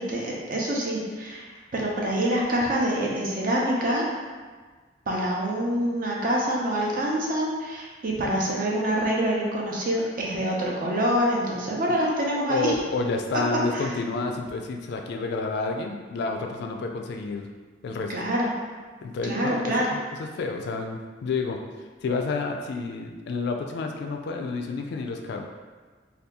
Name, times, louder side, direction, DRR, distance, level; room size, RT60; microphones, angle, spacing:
voice 1, 0.0-4.0 5.1-12.7 13.7-13.9 18.1-18.5 19.2-19.9, equal, 45° right, -3 dB, 0.6 m, -26 dB
voice 2, 12.3-17.5 17.8-18.1 19.0-21.6 22.0-25.5, left 3 dB, 60° left, 3 dB, 0.3 m, -30 dB
2.8 x 2.3 x 3.5 m, 1.4 s
head